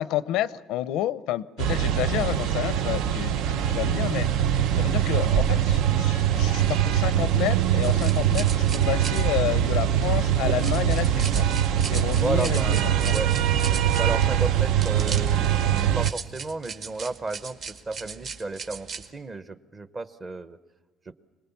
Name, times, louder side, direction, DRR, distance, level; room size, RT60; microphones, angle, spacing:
voice 1, 0.0-4.3 4.8-11.4 11.9-13.1, left 13 dB, 85° left, 16 dB, 0.6 m, -30 dB
sound 1, 1.6-16.1, right 10 dB, 80° right, 0.7 m, -23 dB
sound 2, 7.8-19.1, right 5 dB, 45° right, 1.2 m, -39 dB
voice 2, 12.1-13.3 13.7-20.6 21.1-21.2, right 3 dB, 25° right, 13 dB, 0.8 m, -33 dB
26.0 x 20.0 x 7.0 m, 1.3 s
cardioid pair, 160°, 0 cm